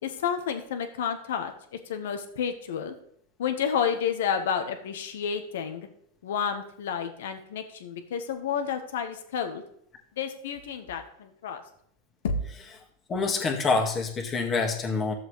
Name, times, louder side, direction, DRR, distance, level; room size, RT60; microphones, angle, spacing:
voice 1, 0.0-1.5 1.9-2.9 3.4-5.9 6.2-9.6 10.2-11.6 12.2-12.4, left 7 dB, 80° left, 7 dB, 1.3 m, -30 dB
voice 2, 13.1-15.1, left 4 dB, 25° left, 1 dB, 1.9 m, -26 dB
13.5 x 7.3 x 3.3 m, 0.68 s
supercardioid pair, 130°, 0 cm